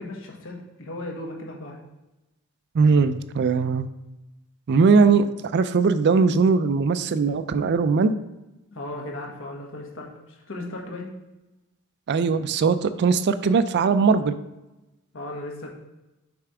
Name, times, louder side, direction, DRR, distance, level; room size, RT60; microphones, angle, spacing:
voice 1, 0.0-1.8 8.7-11.1 15.1-15.7, left 1 dB, 65° left, 0 dB, 1.3 m, -36 dB
voice 2, 2.7-3.9 4.7-5.3 5.5-8.2 12.1-14.4, right 4 dB, 50° right, 12 dB, 0.4 m, -20 dB
7.0 x 3.3 x 4.8 m, 1.0 s
head